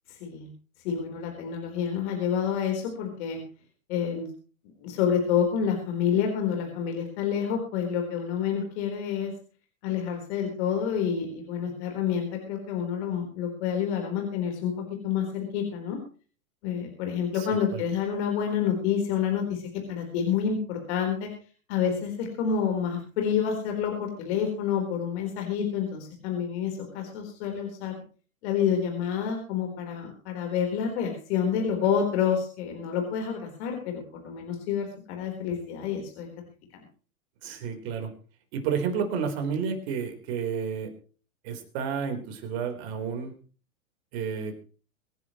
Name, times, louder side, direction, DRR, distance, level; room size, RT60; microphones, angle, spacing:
voice 1, 0.1-0.5 0.8-3.4 3.9-4.3 4.8-9.3 9.8-16.0 16.6-21.3 21.7-27.9 28.4-36.3 36.7-36.8, left 7 dB, 50° left, 3 dB, 4.3 m, -28 dB
voice 2, 37.4-38.1 38.5-40.9 41.4-43.3 44.1-44.5, right 6 dB, 50° right, 6 dB, 4.3 m, -31 dB
24.5 x 11.0 x 3.1 m, 0.39 s
hypercardioid pair, 110°, 42 cm